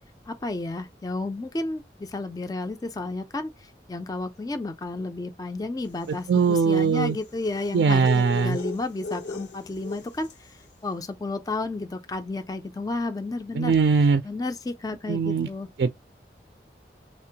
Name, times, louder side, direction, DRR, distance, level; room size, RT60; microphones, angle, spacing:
voice 1, 0.3-13.7 14.2-15.7, left 2 dB, 20° left, 0.3 m, -32 dB
sound 1, 6.0-10.5, left 3 dB, 85° left, 0.7 m, -38 dB
voice 2, 6.3-7.2 7.7-8.6 13.5-14.2 15.1-15.5 15.8-15.9, right 5 dB, 75° right, 0.3 m, -21 dB
3.6 x 2.1 x 2.7 m
head